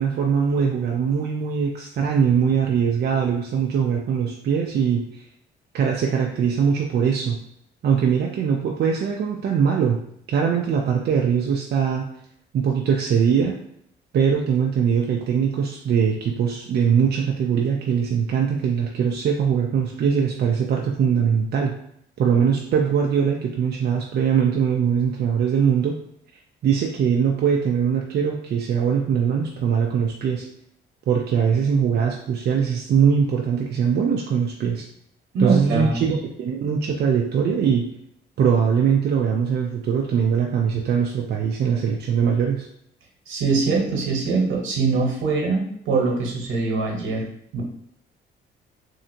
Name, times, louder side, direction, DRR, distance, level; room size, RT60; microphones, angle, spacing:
voice 1, 0.0-5.2 5.7-7.4 7.8-10.0 10.3-12.1 12.5-13.6 14.1-21.8 22.2-26.0 26.6-30.5 31.1-34.9 35.4-37.9 38.4-42.7, right 7 dB, 55° right, 0 dB, 0.5 m, -21 dB
voice 2, 35.3-36.2 43.3-47.3 47.5-47.6, right 4 dB, 80° right, 0 dB, 1.1 m, -23 dB
3.3 x 2.7 x 2.7 m, 0.71 s
cardioid pair, 90°, 20 cm